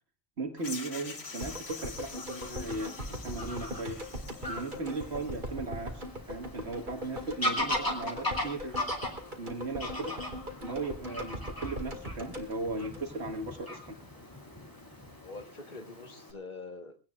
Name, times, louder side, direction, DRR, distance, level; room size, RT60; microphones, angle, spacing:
voice 1, 0.4-4.0 4.4-8.8 9.4-10.1 10.6-13.8, right 2 dB, 80° right, 4 dB, 2.0 m, -37 dB
sound 1, 0.6-5.4, left 5 dB, 80° left, 1.6 m, -45 dB
Fowl / Bird vocalization bird call bird song, 0.6-16.3, left 1 dB, 20° left, 2.6 m, -39 dB
sound 2, 1.4-13.6 13.9-14.0, equal, 50° right, 2.2 m, -41 dB
voice 2, 14.9-17.0, left 3 dB, 45° left, 6 dB, 1.6 m, -45 dB
22.5 x 17.0 x 2.4 m, 0.31 s
omnidirectional pair, 1.1 m